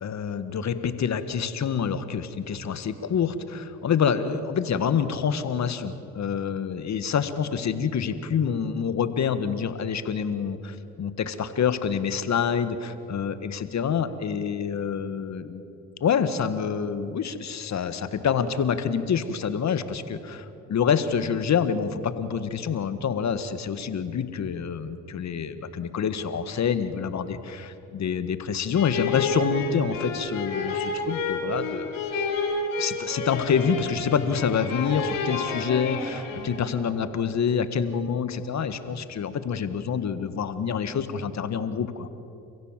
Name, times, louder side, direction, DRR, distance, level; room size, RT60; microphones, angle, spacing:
voice 1, 0.0-15.7 16.0-32.0 32.8-42.1, left 7 dB, 55° left, 11 dB, 1.7 m, -27 dB
sound 1, 28.7-36.8, left 3 dB, 80° left, 4.2 m, -30 dB
30.0 x 15.5 x 7.5 m, 2.9 s
supercardioid pair, 55°, 33 cm